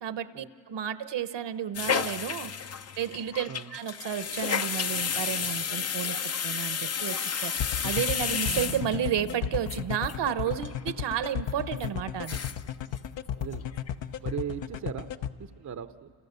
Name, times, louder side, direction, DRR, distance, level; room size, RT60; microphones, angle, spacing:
voice 1, 0.0-2.5 3.0-6.2 6.4-7.5 7.8-12.4, right 9 dB, 60° right, 12 dB, 1.1 m, -32 dB
sound 1, 1.7-9.3 9.7-9.8 10.0-10.1 10.4-10.8 11.1-11.2 11.8-11.9 12.1-12.7 13.0-13.1 13.4-13.9 14.3-14.4, left 7 dB, 35° left, 0.6 m, -32 dB
sound 2, 7.6-15.3, left 9 dB, 70° left, 1.0 m, -33 dB
sound 3, 8.5-11.8, right 12 dB, 85° right, 1.7 m, -46 dB
voice 2, 14.2-15.1 15.4-16.1, right 8 dB, 35° right, 10 dB, 0.7 m, -37 dB
29.0 x 29.0 x 6.8 m, 2.1 s
cardioid pair, 95°, 47 cm